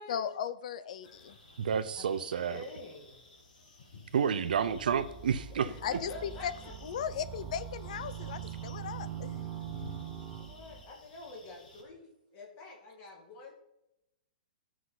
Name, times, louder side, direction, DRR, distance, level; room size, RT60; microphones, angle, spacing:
voice 1, 0.1-1.4 5.8-6.5 6.8-9.5, left 9 dB, 50° left, 0.6 m, -37 dB
sound 1, 1.0-11.8, left 3 dB, 70° left, 3.2 m, -55 dB
voice 2, 1.6-2.6 4.1-5.7, right 7 dB, 70° right, 0.7 m, -30 dB
voice 3, 2.5-3.2 5.5-6.7 10.2-13.5, left 2 dB, 25° left, 2.0 m, -47 dB
sound 2, 4.5-10.8, right 9 dB, 15° right, 0.8 m, -43 dB
13.5 x 6.2 x 4.0 m
hypercardioid pair, 170°, 5 cm